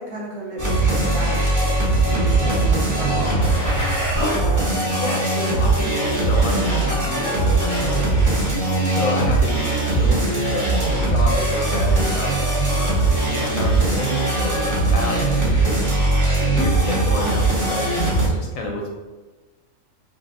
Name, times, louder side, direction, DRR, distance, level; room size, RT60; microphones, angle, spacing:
voice 1, 0.0-1.5 2.0-3.5, equal, 55° right, -6 dB, 1.3 m, -32 dB
sound 1, 0.6-18.3, right 2 dB, 20° right, 0.6 m, -20 dB
voice 2, 4.9-7.6 7.9-8.2 8.7-12.3 12.7-13.0 13.2-14.6 14.9-15.9 16.5-17.9 18.3-18.9, left 2 dB, 75° left, 0 dB, 1.1 m, -29 dB
5.3 x 2.1 x 2.5 m, 1.2 s
omnidirectional pair, 1.5 m